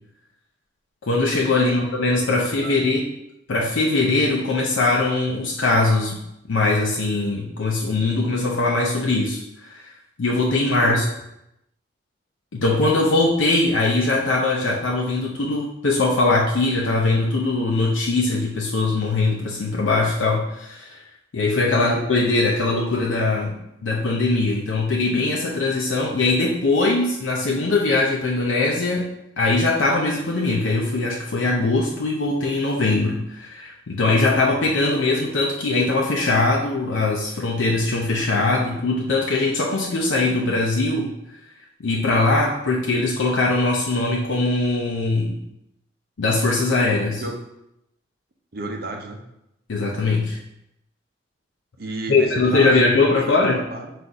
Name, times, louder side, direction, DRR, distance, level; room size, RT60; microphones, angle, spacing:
voice 1, 1.0-3.0 3.5-6.2 6.5-9.9 10.2-11.0 12.5-21.0 21.3-29.1 29.4-41.1 41.8-45.4 46.2-47.2 49.7-50.4 52.1-53.6, left 2 dB, 85° left, -2 dB, 0.5 m, -21 dB
voice 2, 2.3-2.8 10.8-11.1 21.7-22.0 47.2-47.4 48.5-49.2 51.8-53.9, right 2 dB, 50° right, 2 dB, 0.6 m, -33 dB
3.9 x 2.5 x 4.5 m, 0.84 s
head